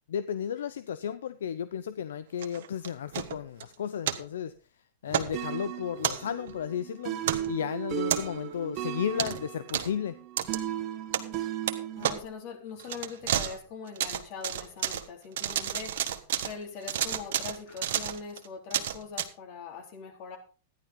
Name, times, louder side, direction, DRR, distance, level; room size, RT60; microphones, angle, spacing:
voice 1, 0.1-4.5 5.0-7.2 7.5-10.2, left 8 dB, 75° left, 14 dB, 0.6 m, -33 dB
sound 1, 2.4-3.6 4.0-4.2 5.1-5.3 6.0-6.6 7.2-7.5 8.1-8.5 9.2-9.4 9.7-9.9 10.4-10.6 11.1-11.4 11.7-11.8 12.0-12.2 12.8-13.6 13.9-15.0 15.4-16.5 16.8-19.2, right 10 dB, 65° right, 1.3 m, -31 dB
sound 2, 5.3-12.2, right 11 dB, 35° right, 1.5 m, -36 dB
voice 2, 11.9-16.0 16.4-20.4, left 5 dB, 50° left, 3 dB, 3.7 m, -42 dB
13.5 x 10.5 x 3.9 m, 0.36 s
hypercardioid pair, 115°, 0 cm